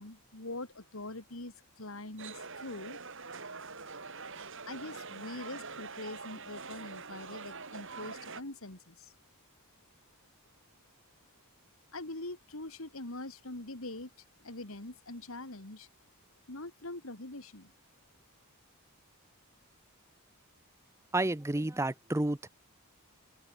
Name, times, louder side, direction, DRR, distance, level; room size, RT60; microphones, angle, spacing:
voice 1, 0.0-3.0 4.7-9.1 11.9-14.1 14.4-15.9 16.5-17.7, left 2 dB, 65° left, 2.8 m, -43 dB
sound 1, 2.2-8.4, right 4 dB, 60° right, 6.4 m, -44 dB
voice 2, 21.1-22.5, right 2 dB, 10° right, 0.6 m, -30 dB
open air
head